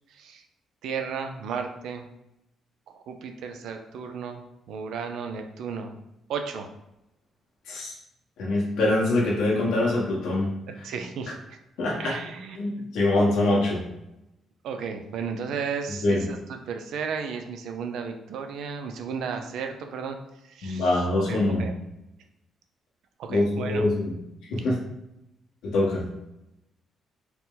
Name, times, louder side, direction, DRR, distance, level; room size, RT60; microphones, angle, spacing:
voice 1, 0.1-0.4 0.8-2.0 2.9-4.4 4.7-5.9 6.3-6.7 10.8-11.4 12.0-12.9 14.6-20.2 20.5-21.0 21.3-21.7 23.2-23.9, right 6 dB, 80° right, 5 dB, 0.5 m, -34 dB
voice 2, 8.4-10.5 11.8-12.2 12.5-13.8 16.0-16.2 20.6-21.7 23.3-24.1 24.5-24.8 25.6-26.0, left 2 dB, 85° left, -4 dB, 1.3 m, -24 dB
4.4 x 2.1 x 3.9 m, 0.88 s
cardioid pair, 90°, 0 cm